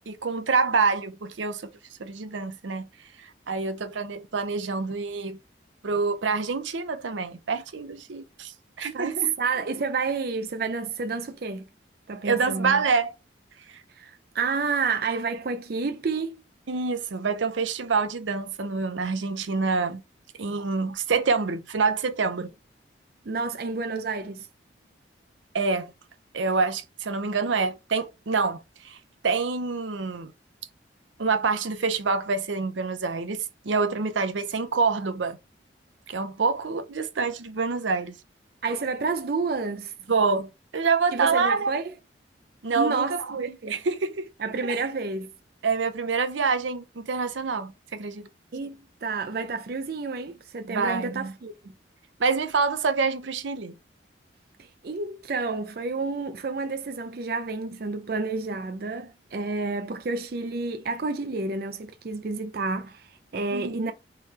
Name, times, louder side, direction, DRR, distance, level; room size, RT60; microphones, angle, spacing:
voice 1, 0.1-1.7 2.0-2.9 3.2-5.4 5.8-9.3 12.2-13.1 13.7-13.8 16.7-20.0 20.4-22.5 25.5-25.9 26.3-29.0 29.2-30.3 31.2-35.4 36.1-38.1 40.1-41.7 42.6-44.3 44.6-44.8 45.6-48.3 50.7-51.3 52.2-53.8 63.5-63.9, right 4 dB, 90° right, 0.7 m, -26 dB
voice 2, 8.9-11.7 12.1-12.8 14.0-16.3 23.3-24.5 38.6-39.9 41.1-41.9 42.8-43.2 43.6-43.8 44.4-45.3 48.5-51.7 54.6-63.9, right 4 dB, 55° right, 0.5 m, -30 dB
3.8 x 3.2 x 4.1 m
head